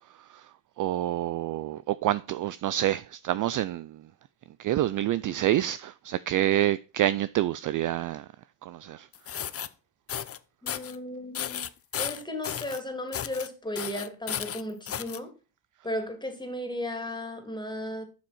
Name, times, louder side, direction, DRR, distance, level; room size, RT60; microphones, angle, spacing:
voice 1, 0.2-0.5 0.8-4.0 4.6-8.3 8.6-9.1, right 13 dB, 45° right, 0.4 m, -27 dB
sound 1, 9.1-9.7 10.1-10.4 10.7-11.0 11.3-12.8 13.1-13.5 13.7-15.2, left 9 dB, 30° left, 0.6 m, -34 dB
voice 2, 10.6-11.7 12.0-15.3 15.8-18.0, left 1 dB, 10° left, 2.6 m, -35 dB
7.3 x 6.2 x 4.2 m
supercardioid pair, 80°, 48 cm